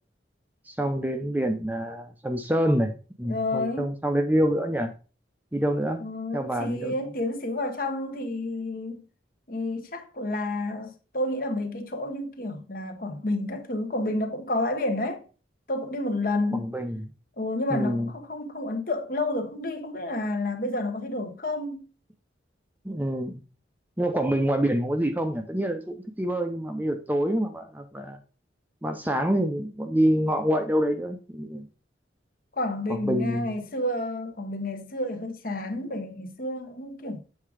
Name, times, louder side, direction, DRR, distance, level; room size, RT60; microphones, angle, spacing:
voice 1, 0.7-2.9 3.2-4.9 5.5-6.0 6.3-7.0 16.5-17.0 17.7-18.1 22.8-23.4 24.0-28.2 28.8-31.7 32.9-33.5, equal, 10° right, 0.6 m, -26 dB
voice 2, 3.2-3.9 6.0-9.0 9.5-15.2 15.7-16.7 17.4-21.9 32.6-37.2, left 2 dB, 50° left, 1.0 m, -30 dB
7.6 x 3.7 x 4.8 m
head